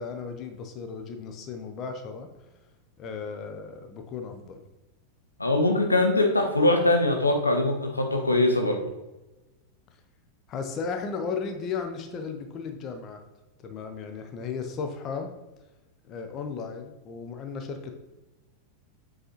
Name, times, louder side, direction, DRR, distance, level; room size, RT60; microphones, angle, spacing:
voice 1, 0.0-2.3 3.0-4.6 10.5-13.2 13.6-15.3 16.1-18.0, left 5 dB, 35° left, 6 dB, 0.7 m, -35 dB
voice 2, 5.4-8.8, left 2 dB, 80° left, 3 dB, 0.8 m, -22 dB
7.7 x 4.0 x 3.1 m, 1.0 s
figure-of-eight pair, 90°, 0 cm